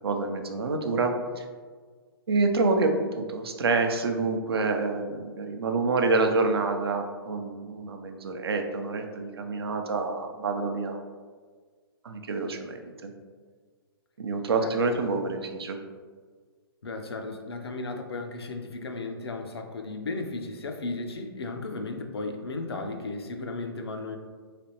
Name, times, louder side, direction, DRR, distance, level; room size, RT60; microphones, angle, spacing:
voice 1, 0.0-1.4 2.3-11.0 12.0-13.1 14.2-15.8, right 3 dB, 80° right, 4 dB, 0.5 m, -27 dB
voice 2, 16.8-24.2, left 3 dB, 90° left, 4 dB, 0.5 m, -35 dB
3.3 x 2.9 x 2.9 m, 1.6 s
hypercardioid pair, 130°, 13 cm